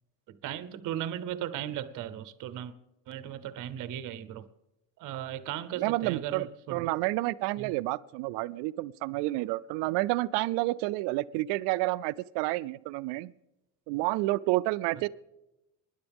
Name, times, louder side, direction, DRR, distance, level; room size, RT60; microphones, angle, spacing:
voice 1, 0.3-2.7 3.1-4.4 5.0-6.9 7.6-7.7, right 11 dB, 45° right, 14 dB, 0.8 m, -37 dB
voice 2, 5.8-13.3 13.9-15.1, right 19 dB, 70° right, 13 dB, 0.5 m, -30 dB
23.0 x 10.5 x 3.5 m, 0.94 s
cardioid pair, 165°, 42 cm